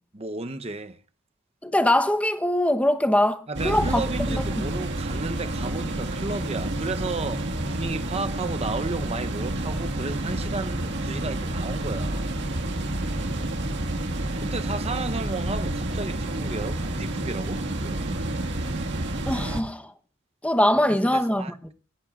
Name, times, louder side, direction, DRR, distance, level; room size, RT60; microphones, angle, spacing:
voice 1, 0.1-1.0 3.5-12.3 14.4-18.2 21.0-21.7, right 3 dB, 25° right, 0.8 m, -33 dB
voice 2, 1.6-4.0 4.3-4.4 19.3-19.9 20.4-21.4, left 1 dB, 5° left, 0.9 m, -22 dB
sound 1, 3.5-19.6, right 1 dB, 50° right, 1.8 m, -29 dB
24.5 x 17.5 x 2.4 m
head